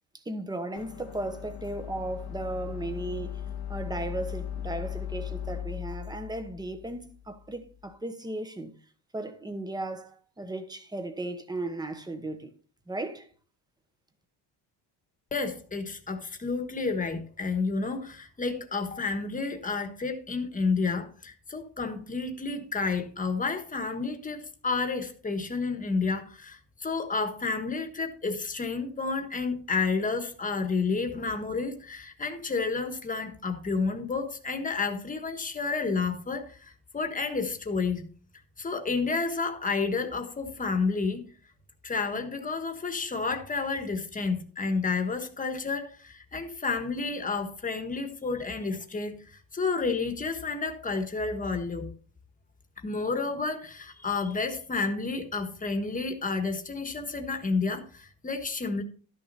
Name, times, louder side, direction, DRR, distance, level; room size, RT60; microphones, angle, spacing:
voice 1, 0.1-3.4 3.7-8.7 9.1-12.5 12.9-13.3, right 2 dB, 10° right, 1.1 m, -36 dB
sound 1, 0.8-7.8, left 9 dB, 60° left, 1.3 m, -38 dB
voice 2, 15.3-38.0 38.6-41.2 41.8-51.9 52.8-58.8, left 4 dB, 20° left, 1.5 m, -30 dB
12.5 x 6.5 x 4.2 m
cardioid pair, 145°, 44 cm